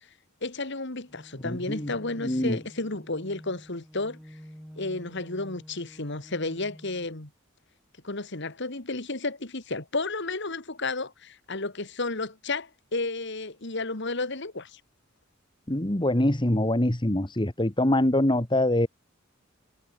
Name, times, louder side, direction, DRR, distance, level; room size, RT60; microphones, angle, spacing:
voice 1, 0.4-4.2 4.8-7.3 8.0-14.8, left 3 dB, 60° left, 2.5 m, -32 dB
sound 1, 1.1-7.1, equal, ahead, 3.5 m, -48 dB
voice 2, 1.4-1.9 2.2-2.6 15.7-18.9, left 1 dB, 25° left, 1.8 m, -24 dB
head